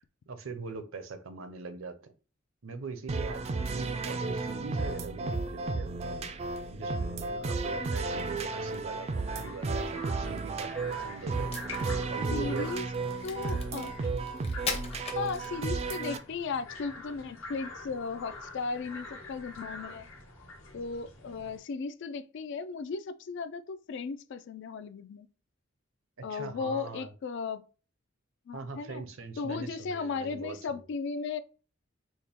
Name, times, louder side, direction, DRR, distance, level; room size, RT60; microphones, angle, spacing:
voice 1, 0.3-2.0 2.6-6.3 6.7-12.7 26.3-27.1 28.5-30.8, right 4 dB, 75° right, 0.6 m, -41 dB
sound 1, 3.1-16.2, right 3 dB, 30° right, 0.3 m, -33 dB
sound 2, 9.2-21.6, left 2 dB, 75° left, 1.1 m, -47 dB
Crack, 11.3-15.9, left 4 dB, 30° left, 0.7 m, -40 dB
voice 2, 12.3-12.9 13.2-13.9 15.1-20.1 20.7-25.3 26.2-27.6 28.5-29.0 29.4-31.4, left 5 dB, 60° left, 0.4 m, -36 dB
4.2 x 2.1 x 3.4 m
head